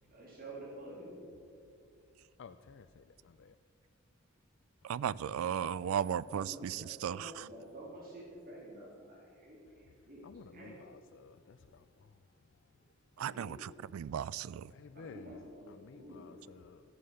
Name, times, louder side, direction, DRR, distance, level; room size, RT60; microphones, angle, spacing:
voice 1, 0.1-1.2 6.0-10.3 10.5-10.8 13.2-13.5 15.0-16.5, right 1 dB, 45° right, 3.3 m, -49 dB
voice 2, 2.4-3.6 5.0-6.2 10.2-12.1 14.7-15.4 15.7-16.8, left 5 dB, 60° left, 0.4 m, -54 dB
voice 3, 4.8-7.3 13.2-14.6, right 9 dB, 85° right, 0.3 m, -35 dB
13.0 x 9.3 x 6.5 m
head